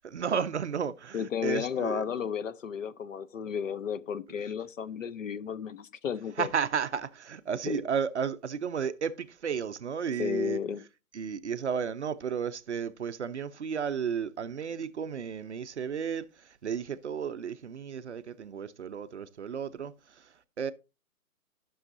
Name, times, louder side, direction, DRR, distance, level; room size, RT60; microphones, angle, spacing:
voice 1, 0.0-2.1 6.4-10.6 11.1-20.7, right 7 dB, 50° right, 0.6 m, -33 dB
voice 2, 1.1-6.5 7.7-7.8 10.2-10.8, left 7 dB, 60° left, 0.7 m, -33 dB
12.5 x 6.2 x 2.6 m
hypercardioid pair, 165°, 45 cm